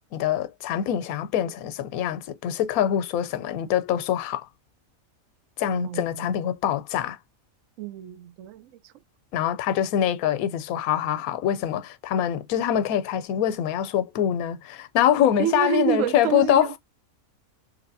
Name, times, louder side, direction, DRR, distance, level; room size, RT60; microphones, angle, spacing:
voice 1, 0.1-4.5 5.6-7.2 9.3-16.8, left 10 dB, 90° left, 1.0 m, -24 dB
voice 2, 5.7-6.4 7.8-8.9 15.4-16.8, right 11 dB, 70° right, 0.9 m, -29 dB
3.1 x 3.0 x 2.6 m
omnidirectional pair, 1.5 m